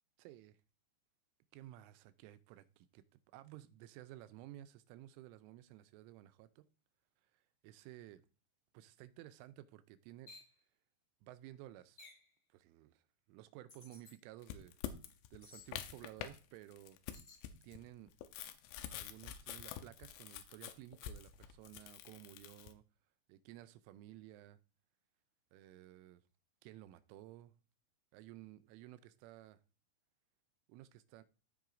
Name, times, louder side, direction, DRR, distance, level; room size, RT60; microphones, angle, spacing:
voice 1, 0.2-0.6 1.5-6.6 7.2-8.2 8.7-10.3 11.2-12.0 12.5-13.0 13.3-14.8 15.3-17.0 17.6-18.1 18.9-22.8 23.3-24.6 25.5-26.2 26.6-27.5 28.1-29.6 30.7-31.2, right 14 dB, 85° right, 3.0 m, -55 dB
sound 1, 10.3-10.5 12.0-12.3 13.7-14.1 15.4-15.7 17.1-17.4, left 3 dB, 40° left, 2.7 m, -57 dB
sound 2, 14.4-16.4 16.7-22.7, left 11 dB, 80° left, 3.0 m, -47 dB
15.5 x 5.5 x 2.5 m
omnidirectional pair, 5.7 m